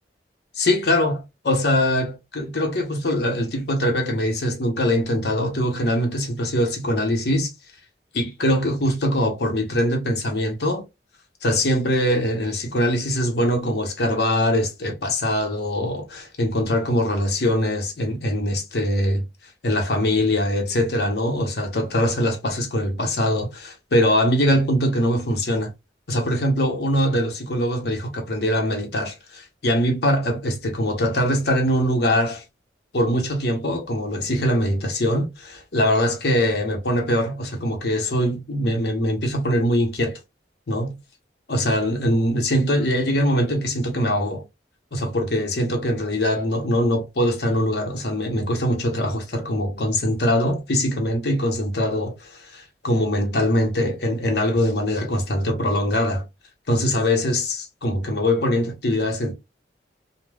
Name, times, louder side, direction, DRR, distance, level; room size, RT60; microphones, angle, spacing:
voice 1, 0.5-7.5 8.1-10.8 11.4-19.2 19.6-25.7 26.1-32.4 32.9-40.2 40.7-41.0 41.5-44.4 44.9-56.3 56.7-59.3, equal, 60° left, 0.8 m, -22 dB
3.2 x 2.1 x 2.2 m
head